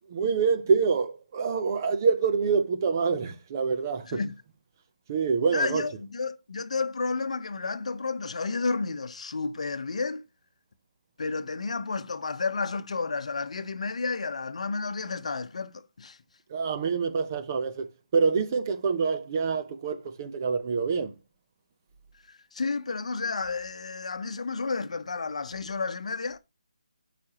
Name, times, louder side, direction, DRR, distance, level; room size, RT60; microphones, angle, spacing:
voice 1, 0.1-4.2 5.1-5.8 16.5-17.9 18.1-21.1, right 5 dB, 25° right, 0.7 m, -26 dB
voice 2, 5.5-10.2 11.2-16.2 22.3-26.4, left 4 dB, 60° left, 0.8 m, -31 dB
12.5 x 5.0 x 2.9 m
hypercardioid pair, 170°, 4 cm